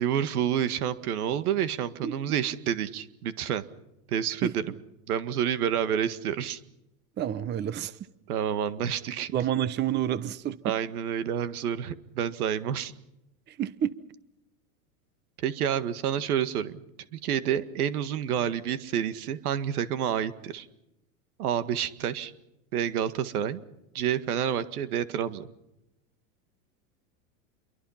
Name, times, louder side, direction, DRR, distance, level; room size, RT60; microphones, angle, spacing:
voice 1, 0.0-3.6 4.1-4.6 5.1-6.6 8.3-9.3 10.6-12.9 15.4-16.8 17.1-20.7 21.4-22.3 22.7-23.6 23.9-25.5, right 9 dB, 80° right, 12 dB, 1.9 m, -29 dB
voice 2, 7.2-8.0 9.3-10.7 13.5-13.9, right 10 dB, 25° right, 16 dB, 0.9 m, -29 dB
27.5 x 23.5 x 5.8 m, 0.90 s
supercardioid pair, 125°, 44 cm